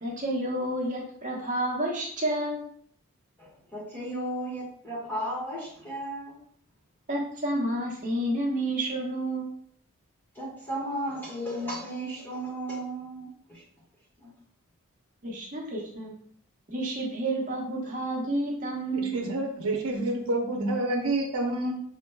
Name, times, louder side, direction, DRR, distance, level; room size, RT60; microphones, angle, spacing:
voice 1, 0.0-2.7 7.1-9.5 15.2-16.1 16.7-19.2, right 1 dB, 35° right, -3 dB, 1.0 m, -30 dB
voice 2, 3.4-6.3 10.3-13.6, right 1 dB, 10° left, -5 dB, 1.5 m, -34 dB
voice 3, 18.9-21.7, right 2 dB, 75° right, 2 dB, 0.7 m, -28 dB
6.0 x 3.1 x 2.2 m, 0.63 s
head